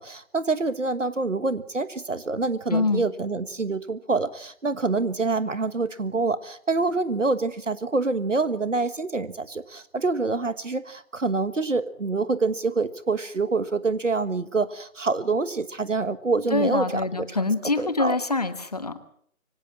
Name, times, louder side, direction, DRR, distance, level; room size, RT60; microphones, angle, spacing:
voice 1, 0.0-17.3 17.8-18.2, right 3 dB, 60° right, 14 dB, 1.5 m, -26 dB
voice 2, 2.7-3.0 16.5-19.0, left 3 dB, 30° left, 12 dB, 1.4 m, -25 dB
24.5 x 17.5 x 7.4 m, 0.64 s
figure-of-eight pair, 160°, 42 cm